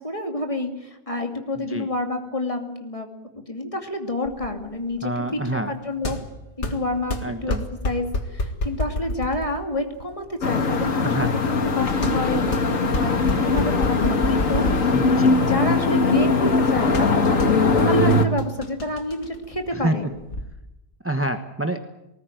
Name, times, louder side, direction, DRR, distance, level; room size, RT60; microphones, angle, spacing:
voice 1, 0.0-3.1 3.5-6.2 6.6-7.6 7.8-11.1 11.5-14.7 15.4-20.1, left 1 dB, 25° left, 4 dB, 2.7 m, -28 dB
voice 2, 1.6-1.9 5.0-5.7 7.2-7.6 11.0-11.3 14.9-15.4 19.7-19.9 21.0-21.8, right 1 dB, 10° right, 7 dB, 1.2 m, -27 dB
sound 1, 4.2-20.4, left 1 dB, 60° left, 2.2 m, -31 dB
sound 2, 10.4-18.3, left 3 dB, 80° left, 2.2 m, -20 dB
19.5 x 19.0 x 9.3 m, 0.91 s
omnidirectional pair, 1.4 m